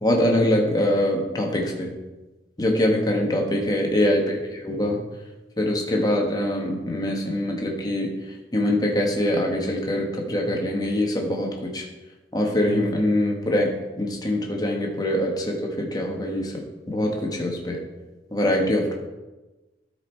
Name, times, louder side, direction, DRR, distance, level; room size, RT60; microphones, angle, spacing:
voice 1, 0.0-1.9 2.6-5.0 5.6-8.1 8.5-11.8 12.3-16.6 16.9-17.8 18.3-18.9, left 1 dB, 20° left, 0 dB, 1.4 m, -23 dB
12.5 x 5.0 x 4.4 m, 1.1 s
head